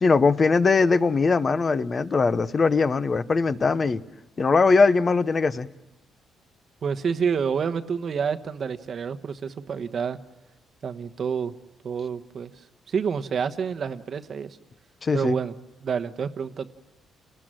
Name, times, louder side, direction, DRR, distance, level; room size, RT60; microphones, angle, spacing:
voice 1, 0.0-4.0 4.4-5.7 15.0-15.4, left 4 dB, 25° left, 0.8 m, -21 dB
voice 2, 6.8-10.2 10.8-11.5 11.8-12.5 12.9-14.6 15.1-15.5 15.8-16.7, right 6 dB, 40° right, 1.1 m, -28 dB
29.5 x 19.5 x 7.6 m
cardioid pair, 175°, 0 cm